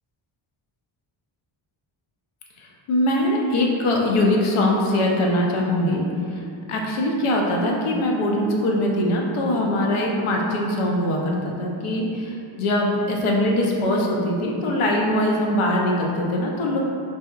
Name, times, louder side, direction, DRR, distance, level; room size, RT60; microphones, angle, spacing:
voice 1, 2.9-6.0 6.3-6.4 6.7-16.8, left 1 dB, 80° left, -1 dB, 0.5 m, -22 dB
2.7 x 2.0 x 2.3 m, 2.5 s
wide cardioid pair, 110°, 49 cm